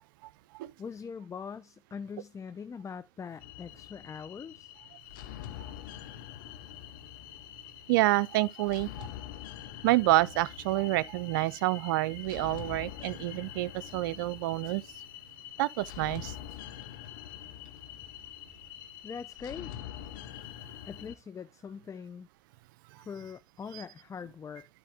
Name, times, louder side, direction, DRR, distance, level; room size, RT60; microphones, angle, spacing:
voice 1, 0.8-4.7 19.0-19.7 20.9-22.3 23.0-24.7, left 6 dB, 30° left, 0.5 m, -42 dB
sound 1, 3.4-21.2, left 12 dB, 85° left, 0.7 m, -45 dB
voice 2, 7.9-9.1 9.8-14.8 15.6-16.3 23.7-23.8, right 17 dB, 85° right, 0.4 m, -28 dB
11.0 x 4.1 x 3.4 m
hypercardioid pair, 75°, 11 cm